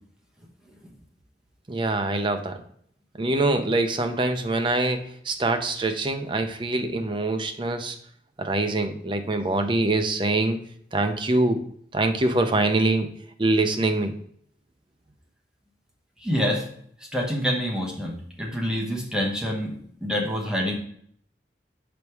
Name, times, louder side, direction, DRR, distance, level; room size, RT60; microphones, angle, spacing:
voice 1, 1.7-2.6 3.2-8.0 8.4-10.6 10.9-11.7 11.9-13.1 13.4-14.1, right 2 dB, 25° right, 6 dB, 0.6 m, -24 dB
voice 2, 16.2-16.7 17.0-20.7, equal, 5° right, -2 dB, 1.1 m, -27 dB
5.2 x 4.1 x 4.7 m, 0.64 s
head